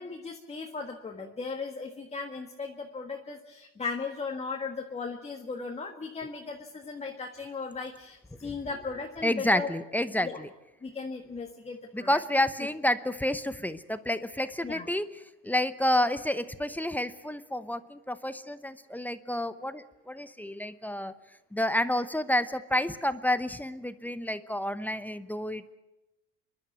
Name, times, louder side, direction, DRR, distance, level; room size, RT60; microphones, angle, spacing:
voice 1, 0.0-9.7 10.2-10.4 10.8-12.2 14.6-14.9, left 4 dB, 20° left, 2 dB, 1.7 m, -37 dB
voice 2, 9.2-10.5 11.9-15.1 15.4-21.2 21.5-25.8, left 1 dB, 5° left, 12 dB, 0.8 m, -29 dB
27.5 x 11.5 x 9.4 m, 0.99 s
cardioid pair, 115°, 30 cm